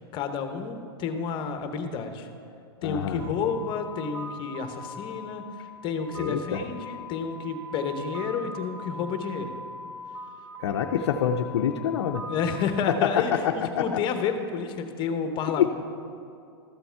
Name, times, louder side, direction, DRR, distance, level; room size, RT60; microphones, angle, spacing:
voice 1, 0.1-2.3 2.8-9.5 12.3-15.7, left 6 dB, 35° left, 7 dB, 1.0 m, -30 dB
voice 2, 2.8-3.3 6.1-6.6 6.9-7.1 10.6-12.2 12.9-14.0 15.6-15.7, left 8 dB, 80° left, 3 dB, 0.5 m, -26 dB
sound 1, 3.2-12.7, left 1 dB, 25° right, 1.1 m, -41 dB
13.0 x 6.9 x 4.6 m, 2.4 s
hypercardioid pair, 130°, 13 cm